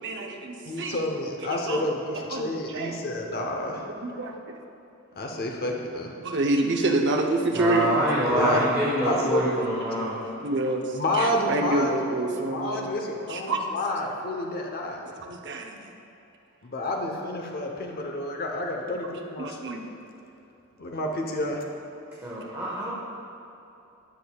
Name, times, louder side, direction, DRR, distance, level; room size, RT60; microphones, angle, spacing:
voice 1, 0.0-1.0 1.7-1.8 2.3-3.0 4.0-4.6 6.2-7.9 10.4-10.8 11.1-12.9 13.3-13.6 15.2-15.8 19.4-19.9, right 2 dB, 55° right, 3 dB, 0.7 m, -27 dB
voice 2, 0.6-3.9 5.1-6.2 8.2-8.7 9.0-9.5 10.0-10.1 10.9-12.2 12.4-15.0 16.6-19.7 20.8-21.7, left 1 dB, 45° left, 2 dB, 0.8 m, -29 dB
voice 3, 7.5-10.2 22.2-22.9, equal, 10° right, -9 dB, 1.2 m, -26 dB
14.5 x 5.3 x 2.3 m, 2.9 s
head